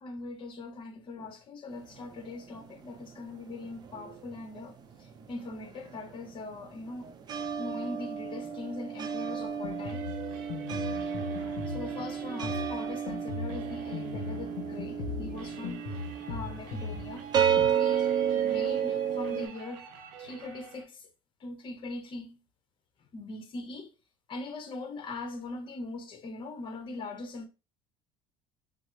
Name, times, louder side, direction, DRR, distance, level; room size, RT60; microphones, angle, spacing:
voice 1, 0.0-7.1 7.6-10.1 11.4-15.9 16.3-17.2 17.8-19.8 20.2-21.1 21.4-22.4 23.1-23.9 24.3-27.5, left 2 dB, 40° left, 0.8 m, -41 dB
sound 1, 1.8-4.4 4.7-19.5, right 8 dB, 35° right, 0.5 m, -32 dB
Drum kit, 9.4-17.7, left 4 dB, 80° left, 0.6 m, -39 dB
sound 2, 9.7-20.8, right 7 dB, 80° right, 0.6 m, -48 dB
3.5 x 2.0 x 3.1 m
supercardioid pair, 100°, 12 cm